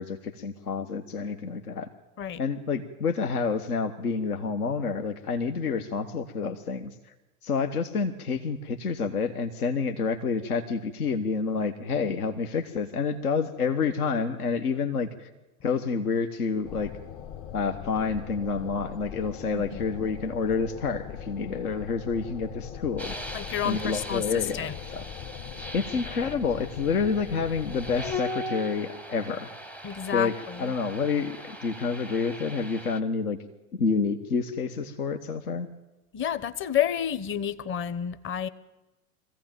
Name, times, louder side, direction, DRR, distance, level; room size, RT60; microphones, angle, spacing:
voice 1, 0.0-1.9 2.4-7.1 7.4-15.3 15.6-16.9 17.5-23.1 23.6-25.0 25.7-29.5 30.1-33.4 33.7-35.7, left 5 dB, 80° left, 7 dB, 1.3 m, -28 dB
sound 1, 16.6-28.2, left 9 dB, 50° left, 1.6 m, -41 dB
sound 2, 23.0-33.0, left 1 dB, 5° left, 0.6 m, -40 dB
voice 2, 23.3-24.2 24.5-24.7 29.8-30.7 36.1-38.5, left 9 dB, 25° left, 15 dB, 0.9 m, -29 dB
21.5 x 15.5 x 9.0 m, 1.0 s
hypercardioid pair, 95°, 44 cm